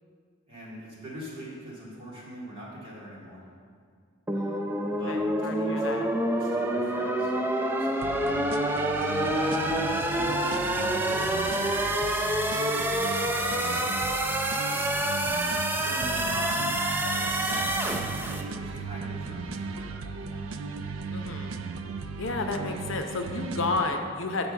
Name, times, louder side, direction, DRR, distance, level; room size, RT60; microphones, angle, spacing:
voice 1, 0.5-3.5 5.0-5.2 5.7-7.3 7.8-8.1 9.1-12.2 12.9-14.1 15.8-16.7 17.1-20.5, equal, 25° right, -7 dB, 2.1 m, -41 dB
voice 2, 4.3-6.1 21.1-21.6 22.1-24.5, left 3 dB, 65° left, 5 dB, 0.7 m, -32 dB
sound 1, 4.3-18.4, right 1 dB, 10° right, 0.4 m, -27 dB
sound 2, 8.0-24.0, right 4 dB, 85° right, 0.4 m, -37 dB
6.0 x 5.3 x 6.6 m, 2.2 s
head